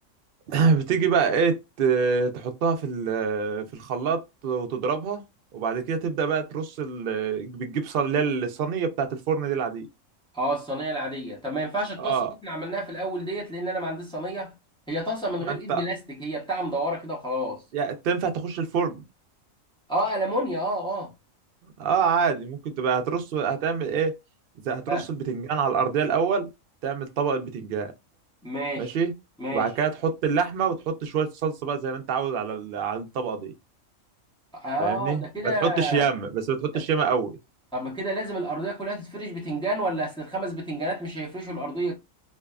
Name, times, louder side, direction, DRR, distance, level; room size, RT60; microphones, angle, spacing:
voice 1, 0.5-5.2 5.5-9.9 12.0-12.3 15.5-15.8 17.7-19.0 21.6-24.2 24.6-26.5 26.8-27.9 28.8-29.1 29.5-33.5 34.8-37.4, right 6 dB, 60° right, 0.6 m, -26 dB
voice 2, 10.3-14.5 14.9-17.6 19.9-21.1 24.9-25.1 28.4-28.9 29.4-29.7 34.5-36.1 36.7-36.8 37.7-41.9, right 1 dB, 5° left, 0.7 m, -30 dB
2.6 x 2.3 x 2.3 m
omnidirectional pair, 1.4 m